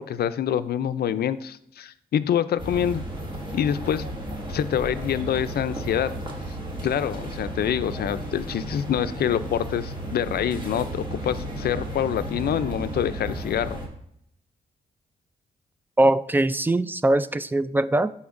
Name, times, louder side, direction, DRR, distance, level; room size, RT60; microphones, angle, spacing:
voice 1, 0.0-3.0 3.5-4.1 4.5-6.1 6.8-13.8, left 9 dB, 70° left, 13 dB, 0.5 m, -26 dB
sound 1, 2.6-13.9, right 1 dB, 30° right, 1.8 m, -34 dB
voice 2, 16.0-18.1, right 1 dB, 10° right, 13 dB, 0.4 m, -21 dB
12.5 x 4.3 x 2.5 m, 0.73 s
cardioid pair, 70°, 17 cm